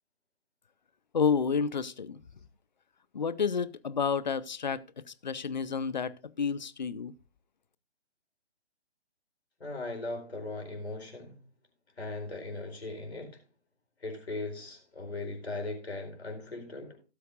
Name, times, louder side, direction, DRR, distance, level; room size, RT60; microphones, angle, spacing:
voice 1, 1.1-2.2 3.1-7.1, left 6 dB, 40° left, 0.7 m, -30 dB
voice 2, 9.6-11.4 12.0-13.4 14.0-17.0, left 2 dB, 65° left, 4.3 m, -38 dB
18.0 x 7.7 x 2.5 m
figure-of-eight pair, 140°, 34 cm